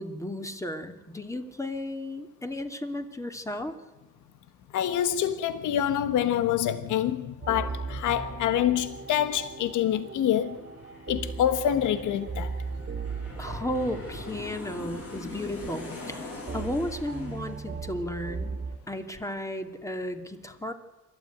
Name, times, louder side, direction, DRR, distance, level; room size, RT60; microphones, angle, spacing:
voice 1, 0.0-3.8 13.4-18.6 18.9-20.7, left 1 dB, 10° left, 2.6 m, -34 dB
voice 2, 4.7-10.7 11.1-12.5, left 10 dB, 80° left, 1.3 m, -26 dB
sound 1, 7.4-18.8, right 4 dB, 35° right, 2.4 m, -38 dB
Aircraft, 8.3-19.2 19.5-19.6, left 3 dB, 50° left, 7.5 m, -44 dB
27.0 x 13.0 x 9.3 m
cardioid pair, 90°, 30 cm